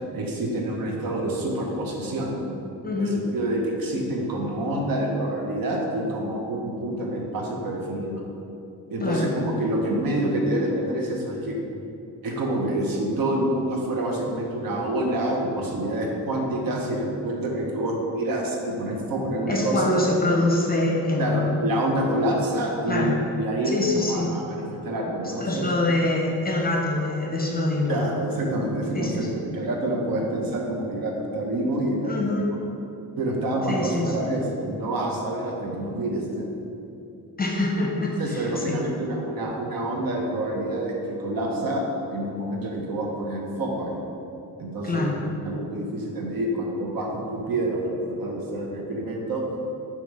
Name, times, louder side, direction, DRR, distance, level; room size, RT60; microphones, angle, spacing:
voice 1, 0.1-2.3 3.0-8.2 8.9-11.6 12.2-20.0 21.2-25.7 27.9-32.1 33.2-36.5 38.2-41.8 42.1-44.0 44.6-45.1 45.4-49.4, right 1 dB, 65° right, 0 dB, 1.2 m, -27 dB
voice 2, 2.8-3.3 9.0-9.3 19.5-21.6 22.9-23.2 23.7-24.3 25.4-28.1 28.9-29.3 32.0-32.5 33.7-34.1 37.4-38.9 44.8-45.2, left 2 dB, 25° left, -2 dB, 0.9 m, -25 dB
4.6 x 4.5 x 5.5 m, 2.7 s
cardioid pair, 70°, 37 cm